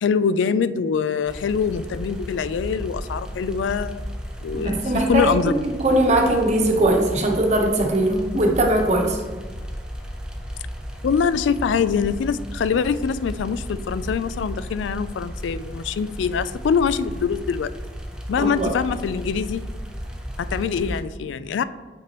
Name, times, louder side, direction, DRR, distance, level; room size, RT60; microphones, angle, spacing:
voice 1, 0.0-4.2 4.4-4.8 5.1-5.6 11.0-17.7 18.3-19.6 20.4-21.6, left 6 dB, 90° left, 14 dB, 0.3 m, -24 dB
sound 1, 1.3-21.0, equal, 5° right, 0.6 m, -34 dB
voice 2, 4.5-9.2 18.4-18.7, right 1 dB, 40° right, 1 dB, 1.0 m, -20 dB
7.5 x 5.9 x 3.0 m, 1.4 s
head